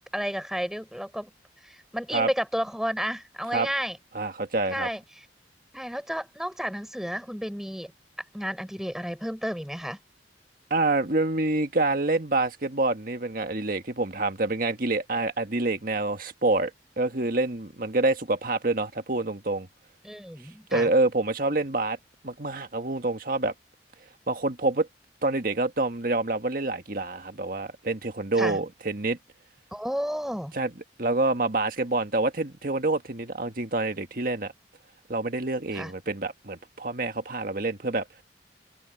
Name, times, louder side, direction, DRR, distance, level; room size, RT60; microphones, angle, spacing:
voice 1, 0.1-1.3 1.6-4.0 4.7-5.0 5.7-7.9 8.3-10.0 20.0-20.9 28.4-28.6 29.7-30.5 35.7-35.9, equal, 5° right, 5.2 m, -31 dB
voice 2, 4.1-4.9 10.7-16.7 17.0-19.7 20.7-22.0 22.2-23.5 24.3-24.9 25.2-29.2 30.5-30.7 31.0-34.5 35.1-38.0, right 2 dB, 50° right, 1.7 m, -27 dB
head